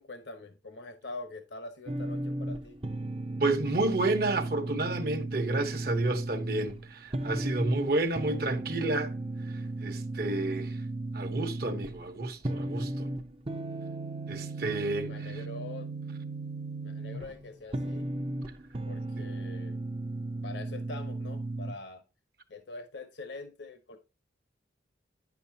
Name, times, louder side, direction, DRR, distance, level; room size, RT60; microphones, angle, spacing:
voice 1, 0.0-2.8 14.7-15.9 16.8-18.1 18.9-19.8 20.4-22.0 22.5-24.0, left 3 dB, 70° left, 1.0 m, -44 dB
sound 1, 1.9-21.7, right 2 dB, 30° right, 0.6 m, -36 dB
voice 2, 3.4-9.1 9.5-10.8 11.1-13.1 14.3-15.3 19.2-19.3, right 2 dB, 55° right, 1.1 m, -30 dB
9.6 x 7.0 x 2.8 m
head